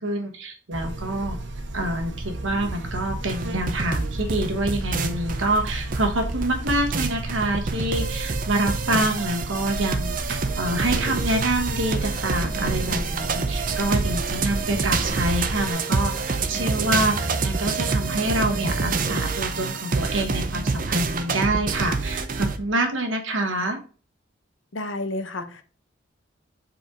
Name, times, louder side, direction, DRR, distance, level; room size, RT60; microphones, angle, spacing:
voice 1, 0.0-1.4 1.7-23.8, right 1 dB, 85° right, 1.4 m, -26 dB
Buzz, 0.7-15.7, right 1 dB, 65° right, 1.0 m, -33 dB
sound 1, 3.3-22.6, right 4 dB, 45° right, 0.6 m, -27 dB
voice 2, 24.7-25.6, left 2 dB, 75° left, 0.9 m, -30 dB
5.0 x 4.5 x 5.0 m
head